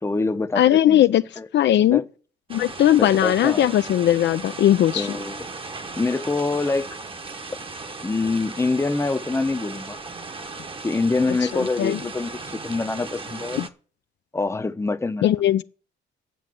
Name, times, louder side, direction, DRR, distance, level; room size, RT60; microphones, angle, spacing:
voice 1, 0.0-1.0 1.4-1.5 1.9-2.0 3.0-3.6 4.9-5.5 6.0-6.9 8.0-10.0 10.8-13.6 14.3-15.4, left 3 dB, 15° left, 0.8 m, -25 dB
voice 2, 0.6-1.2 1.5-2.0 2.5-5.1 11.5-12.0 13.6-13.7 15.2-15.6, left 12 dB, 65° left, 0.5 m, -18 dB
sound 1, 2.5-13.7, right 3 dB, 25° right, 1.1 m, -36 dB
9.4 x 7.2 x 7.7 m
cardioid pair, 90°, 20 cm